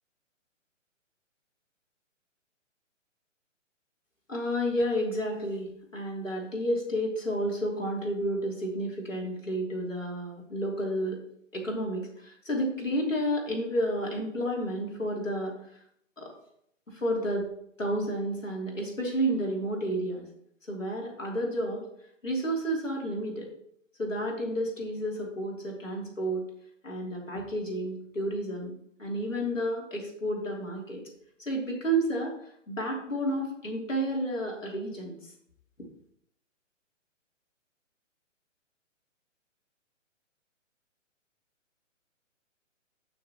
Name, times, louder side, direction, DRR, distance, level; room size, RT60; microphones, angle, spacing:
voice 1, 4.3-11.2 11.5-15.5 16.2-16.3 16.9-17.5 17.8-20.3 20.7-21.8 22.2-23.5 24.0-26.5 26.8-28.7 29.0-31.0 31.4-32.3 32.7-35.2, right 1 dB, 80° left, -1 dB, 3.2 m, -31 dB
13.0 x 6.5 x 3.0 m, 0.70 s
figure-of-eight pair, 130°, 38 cm